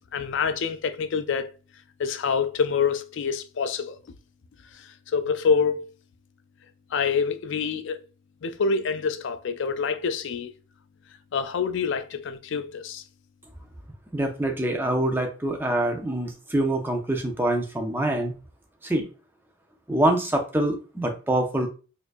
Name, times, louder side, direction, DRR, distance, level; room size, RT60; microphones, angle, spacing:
voice 1, 0.1-1.5 2.0-4.0 4.7-5.8 6.9-8.0 8.4-10.5 11.3-13.0, left 5 dB, 55° left, 0.3 m, -26 dB
voice 2, 14.1-18.3 18.8-19.1 19.9-21.7, right 1 dB, 10° right, 0.5 m, -25 dB
4.2 x 2.5 x 2.5 m
head